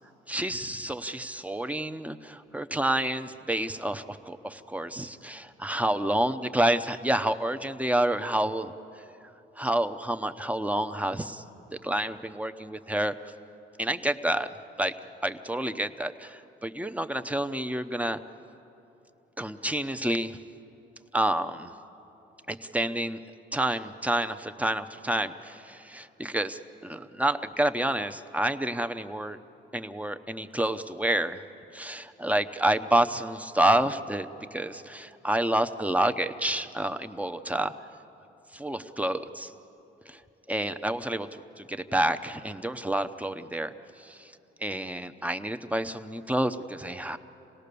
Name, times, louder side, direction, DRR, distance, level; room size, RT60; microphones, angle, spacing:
voice 1, 0.3-8.7 9.6-11.4 11.8-13.1 13.8-14.5 14.8-15.0 15.2-18.2 19.4-20.4 21.1-21.7 22.5-23.2 23.5-29.4 29.7-31.4 31.7-37.7 38.5-39.5 40.1-40.2 40.5-43.7 44.0-44.3 44.6-47.2, right 1 dB, 5° right, 8 dB, 0.8 m, -29 dB
27.0 x 18.0 x 6.9 m, 2.9 s
cardioid pair, 90°, 20 cm